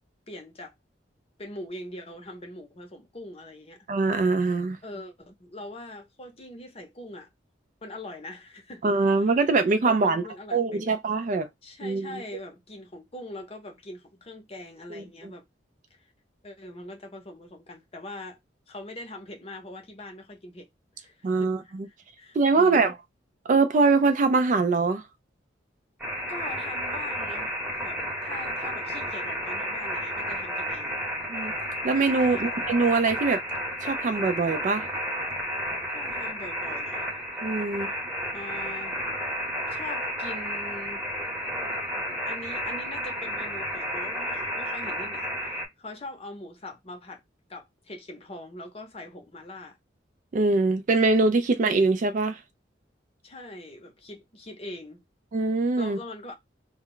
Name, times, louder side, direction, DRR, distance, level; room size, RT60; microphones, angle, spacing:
voice 1, 0.3-0.7 1.4-3.9 4.8-7.3 7.8-9.3 9.8-11.0 11.6-15.4 15.9-16.1 16.4-18.4 18.7-20.7 21.0-23.0 26.3-27.5 27.8-31.0 32.3-32.5 35.9-37.1 38.3-39.0 39.7-41.0 42.2-47.2 47.5-49.8 53.2-55.0 55.8-56.3, left 1 dB, 35° left, 0.7 m, -42 dB
voice 2, 3.9-4.8 8.8-10.2 10.5-11.5 11.8-12.1 14.9-15.0 21.2-21.9 22.4-22.9 23.5-25.0 31.3-31.5 31.8-33.4 33.8-34.9 37.4-37.9 50.3-52.4 55.3-56.0, right 3 dB, 40° right, 0.3 m, -23 dB
sound 1, 26.0-45.7, equal, 5° right, 0.9 m, -32 dB
2.2 x 2.1 x 3.7 m
head